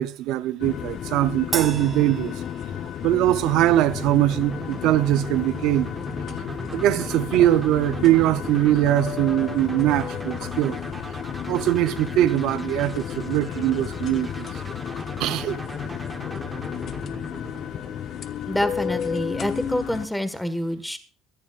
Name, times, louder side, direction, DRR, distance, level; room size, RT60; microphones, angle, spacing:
voice 1, 0.0-2.4 3.0-5.9 6.7-10.8 11.5-14.5 15.2-15.6, right 14 dB, 75° right, 0.7 m, -21 dB
sound 1, 0.6-20.1, left 9 dB, 50° left, 1.1 m, -32 dB
Crash cymbal, 1.5-3.2, right 5 dB, 35° right, 2.2 m, -33 dB
sound 2, 3.5-18.4, right 3 dB, 15° right, 1.0 m, -39 dB
voice 2, 18.5-21.0, left 1 dB, 5° left, 1.7 m, -27 dB
23.0 x 11.0 x 2.5 m
cardioid pair, 115°, 0 cm